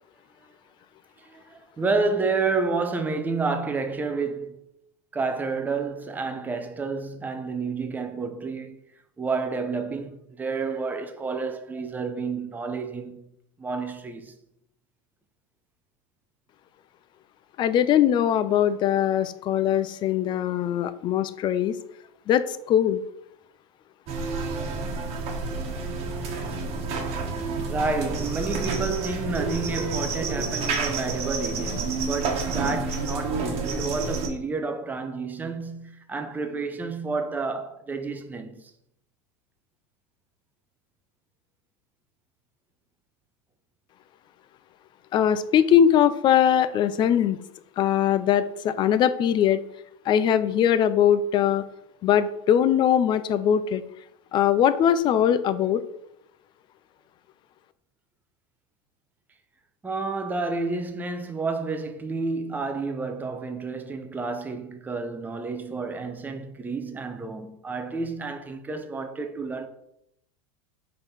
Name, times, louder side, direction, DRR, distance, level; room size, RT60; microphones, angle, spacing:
voice 1, 1.2-4.6 5.1-8.8 9.2-13.2 13.6-14.3 27.7-38.7 59.8-69.7, right 4 dB, 10° right, 0.6 m, -30 dB
voice 2, 17.6-21.7 22.3-23.0 45.1-47.4 47.8-49.6 50.1-51.7 52.0-53.8 54.3-55.8, left 9 dB, 30° left, 0.4 m, -21 dB
sound 1, 24.1-34.3, right 3 dB, 40° right, 1.4 m, -29 dB
5.1 x 3.9 x 5.7 m
supercardioid pair, 140°, 17 cm